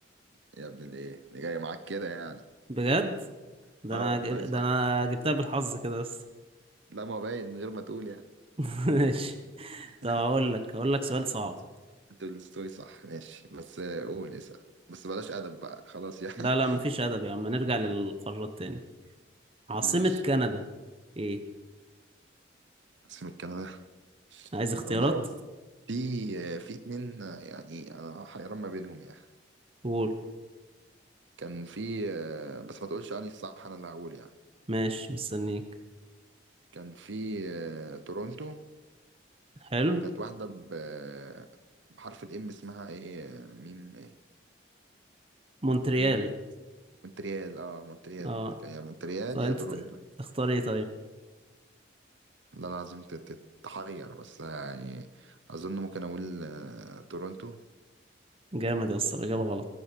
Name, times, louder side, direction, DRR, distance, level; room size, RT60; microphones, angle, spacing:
voice 1, 0.5-2.4 3.9-4.6 6.9-8.2 9.9-10.3 12.2-14.6 14.9-16.8 19.8-20.2 23.0-23.8 24.3-24.6 24.8-25.3 25.9-29.3 31.4-34.3 36.7-38.7 39.9-41.5 41.9-44.1 46.0-46.3 47.0-48.4 48.6-49.9 52.5-57.6, right 3 dB, 75° right, 10 dB, 0.9 m, -39 dB
voice 2, 2.7-3.2 3.8-6.1 8.6-11.6 16.4-18.8 19.7-20.6 21.2-21.4 24.5-25.1 29.8-30.1 34.7-35.6 39.7-40.0 45.6-46.3 48.2-48.5 49.3-49.9 50.2-50.9 58.5-59.6, right 1 dB, 30° right, 8 dB, 1.1 m, -29 dB
21.0 x 12.0 x 4.6 m, 1.2 s
head